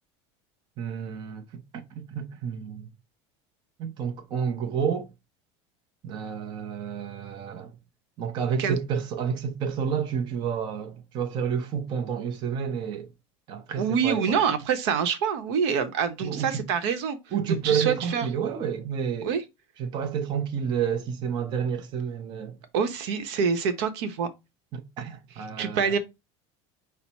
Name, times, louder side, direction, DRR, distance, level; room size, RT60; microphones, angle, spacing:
voice 1, 0.8-2.9 3.8-5.1 6.0-7.8 8.2-13.1 13.5-14.4 16.2-16.7 17.3-19.3 19.8-22.6 24.7-26.0, right 7 dB, 30° right, 0.6 m, -30 dB
voice 2, 13.7-17.2 17.5-18.3 19.2-19.4 22.7-24.3 25.6-26.0, right 6 dB, 70° right, 0.8 m, -26 dB
5.8 x 2.0 x 4.1 m
cardioid pair, 165°, 14 cm